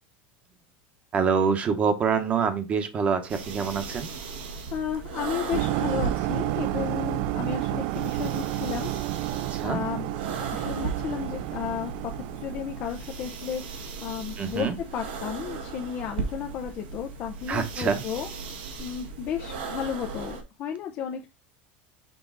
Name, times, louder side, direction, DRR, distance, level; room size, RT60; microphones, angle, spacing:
voice 1, 1.1-4.1 9.5-9.8 14.4-14.8 17.5-18.0, right 6 dB, 25° right, 8 dB, 1.0 m, -25 dB
sound 1, 3.3-20.4, right 5 dB, 85° right, 1.7 m, -37 dB
voice 2, 4.7-9.0 9.6-10.1 10.3-11.9 12.3-18.3 18.8-21.3, left 8 dB, 35° left, 4 dB, 0.6 m, -33 dB
sound 2, 5.5-13.1, right 18 dB, 55° right, 0.4 m, -31 dB
6.2 x 3.9 x 3.9 m, 0.27 s
supercardioid pair, 160°, 5 cm